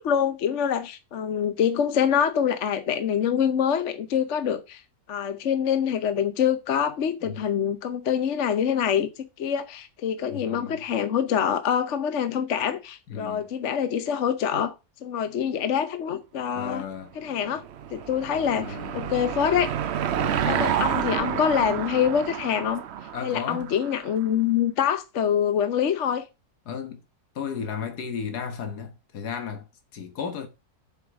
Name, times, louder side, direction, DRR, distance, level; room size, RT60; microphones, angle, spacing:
voice 1, 0.0-4.8 5.1-14.7 15.0-16.8 17.2-17.6 17.9-19.7 20.4-22.8 23.2-26.2, left 8 dB, 55° left, 1.0 m, -25 dB
voice 2, 10.3-10.8 13.1-13.5 16.5-17.1 18.6-18.9 20.2-20.5 23.1-23.7 26.6-27.0 27.3-29.7 29.9-30.5, left 6 dB, 90° left, 1.8 m, -34 dB
Car passing by / Engine, 17.2-24.1, right 9 dB, 60° right, 0.8 m, -29 dB
8.0 x 4.9 x 6.0 m
omnidirectional pair, 1.6 m